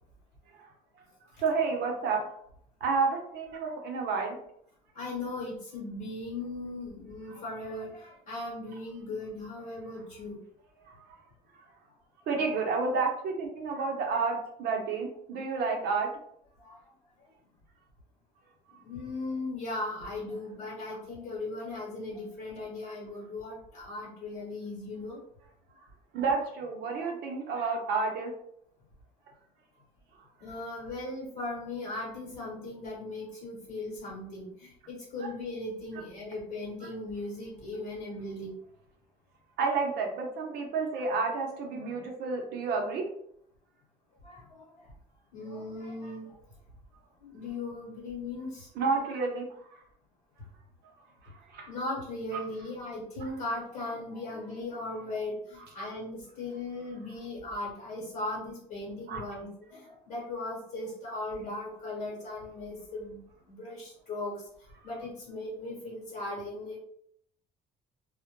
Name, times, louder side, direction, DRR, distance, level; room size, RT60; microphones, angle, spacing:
voice 1, 1.4-2.2 2.8-4.4 11.1-11.2 12.3-16.1 26.1-28.3 39.6-43.0 48.8-49.4 51.5-51.7 52.3-52.4 59.1-59.2, right 4 dB, 70° right, 1 dB, 0.7 m, -30 dB
voice 2, 4.9-10.4 16.6-16.8 18.8-25.2 30.4-38.5 44.2-44.6 45.3-46.3 47.2-48.7 51.7-63.2 63.5-64.5 64.8-66.8, left 2 dB, 55° left, -4 dB, 1.0 m, -38 dB
2.1 x 2.1 x 2.9 m, 0.70 s
cardioid pair, 110°, 17 cm